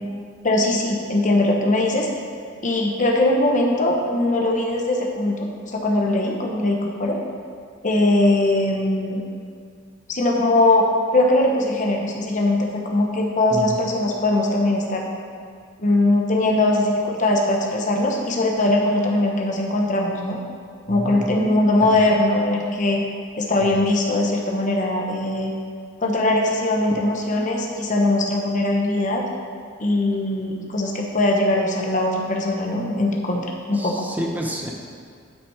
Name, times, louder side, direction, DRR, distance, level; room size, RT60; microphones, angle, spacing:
voice 1, 0.4-2.1 2.6-7.2 7.8-9.2 10.1-10.9 11.1-15.1 15.8-20.4 20.9-23.0 23.4-25.5 26.0-29.2 29.8-33.9, left 2 dB, 40° left, 0 dB, 0.9 m, -21 dB
voice 2, 20.9-21.3 21.8-22.0 23.6-23.7 26.9-27.0 33.7-34.7, equal, 10° right, -1 dB, 0.9 m, -29 dB
8.6 x 5.9 x 4.8 m, 2.1 s
head